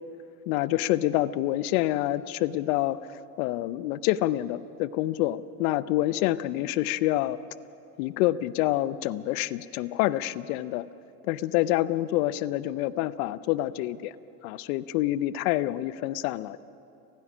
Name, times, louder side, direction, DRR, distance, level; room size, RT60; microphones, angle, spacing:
voice 1, 0.5-3.0 3.4-7.4 8.0-10.9 11.2-14.1 14.4-16.6, left 15 dB, 65° left, 17 dB, 0.8 m, -27 dB
29.5 x 16.0 x 6.2 m, 2.7 s
hypercardioid pair, 90°, 46 cm